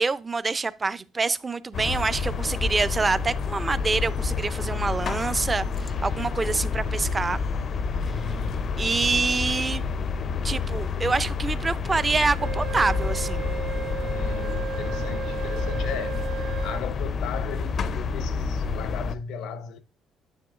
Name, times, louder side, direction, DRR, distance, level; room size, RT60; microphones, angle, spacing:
voice 1, 0.0-7.4 8.8-9.9 10.4-13.5, right 4 dB, 20° right, 0.5 m, -26 dB
sound 1, 1.7-19.2, left 5 dB, 45° left, 0.5 m, -29 dB
voice 2, 8.0-8.8 14.1-19.8, left 6 dB, 85° left, 1.0 m, -36 dB
Wind instrument woodwind instrument, 12.4-16.8, right 8 dB, 65° right, 1.5 m, -34 dB
9.8 x 7.5 x 2.4 m
cardioid pair, 140°, 0 cm